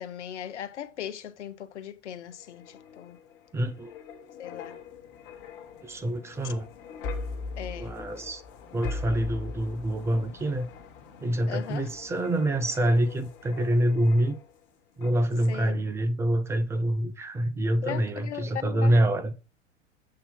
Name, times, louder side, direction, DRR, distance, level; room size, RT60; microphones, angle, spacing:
voice 1, 0.0-3.2 4.4-4.8 6.4-6.5 7.6-7.9 11.5-11.9 15.5-15.8 17.8-19.0, left 10 dB, 70° left, 0.8 m, -38 dB
sound 1, 2.3-14.6 15.0-15.2, left 4 dB, 40° left, 1.3 m, -41 dB
voice 2, 3.5-3.9 5.8-6.7 7.7-8.4 8.7-10.7 11.2-14.4 15.0-19.3, right 1 dB, 5° right, 0.5 m, -26 dB
7.6 x 2.8 x 5.2 m
figure-of-eight pair, 100°, 37 cm